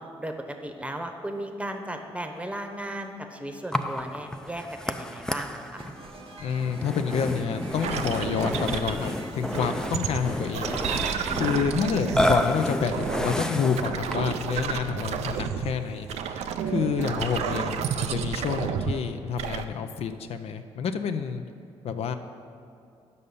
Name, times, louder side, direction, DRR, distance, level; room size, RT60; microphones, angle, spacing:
voice 1, 0.0-5.9 11.8-12.3 17.0-17.6, right 1 dB, 10° right, 4 dB, 0.9 m, -36 dB
Burping eructation, 3.7-14.4, left 1 dB, 5° left, 0.4 m, -31 dB
sound 1, 5.8-14.3, right 2 dB, 55° right, 0.9 m, -47 dB
voice 2, 6.4-11.1 11.3-21.4 21.8-22.2, left 6 dB, 65° left, 8 dB, 0.4 m, -29 dB
sound 2, 7.8-9.1 9.5-12.4 12.8-15.7 16.1-19.0 19.4-19.6, right 7 dB, 70° right, 0.4 m, -31 dB
5.5 x 5.4 x 6.7 m, 2.5 s
supercardioid pair, 55°, 11 cm